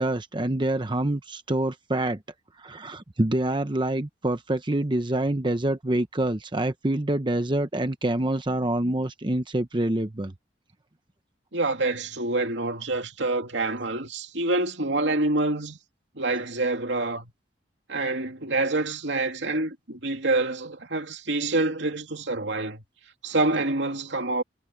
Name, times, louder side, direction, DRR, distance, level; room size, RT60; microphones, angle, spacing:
voice 1, 0.0-2.2 2.6-10.3, right 1 dB, 25° right, 0.9 m, -26 dB
voice 2, 11.5-15.8 16.2-17.3 17.9-22.8 23.2-24.4, right 2 dB, 80° right, 2.6 m, -27 dB
head